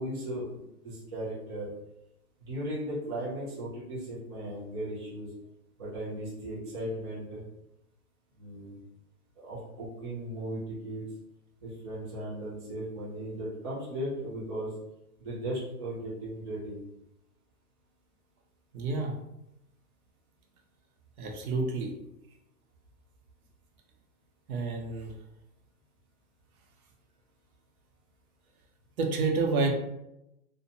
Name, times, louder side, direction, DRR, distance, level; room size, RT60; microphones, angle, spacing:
voice 1, 0.0-1.7 2.4-5.3 5.8-7.4 8.4-8.8 9.4-11.0 11.6-14.7 15.2-16.8, right 1 dB, 20° right, -8 dB, 0.3 m, -37 dB
voice 2, 18.7-19.2 21.2-21.9 24.5-25.1 29.0-29.7, right 3 dB, 70° right, 3 dB, 0.8 m, -29 dB
2.8 x 2.1 x 2.6 m, 0.86 s
hypercardioid pair, 150°, 45 cm